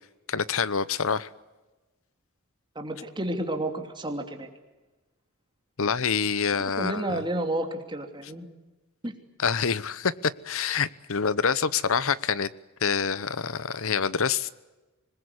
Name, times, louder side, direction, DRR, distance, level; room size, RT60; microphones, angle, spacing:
voice 1, 0.3-1.3 5.8-7.2 9.4-12.5 12.8-14.5, left 6 dB, 65° left, 18 dB, 0.9 m, -26 dB
voice 2, 2.7-4.5 6.8-8.5 9.0-9.1, right 1 dB, 20° right, 5 dB, 2.9 m, -31 dB
26.0 x 20.5 x 9.7 m, 1.2 s
head